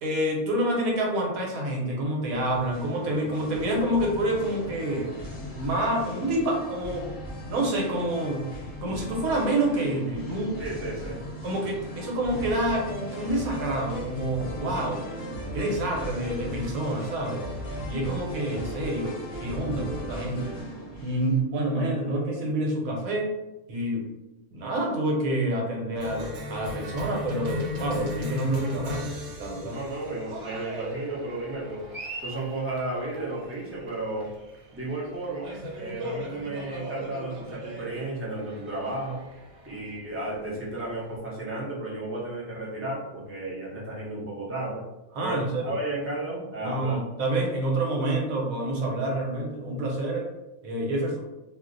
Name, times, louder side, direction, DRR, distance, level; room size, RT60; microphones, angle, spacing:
voice 1, 0.0-5.2 5.5-7.1 7.5-8.5 8.8-10.6 11.4-15.0 15.5-17.4 17.9-20.5 21.0-23.3 23.7-24.0 24.5-29.8 45.1-45.7 46.6-50.2 50.6-51.2, right 1 dB, 80° right, -1 dB, 1.2 m, -28 dB
Singing, 2.2-21.4, equal, 50° left, 0.7 m, -39 dB
voice 2, 10.6-11.2 29.6-31.8 32.2-34.3 34.7-35.5 35.7-39.2 39.7-44.8 45.2-47.0, right 2 dB, 20° right, -5 dB, 0.3 m, -33 dB
sound 1, 12.3-20.6, right 1 dB, 80° left, 0.4 m, -38 dB
Cheering, 26.0-41.1, left 1 dB, 65° right, 0.9 m, -37 dB
2.5 x 2.0 x 3.8 m, 0.99 s
omnidirectional pair, 1.5 m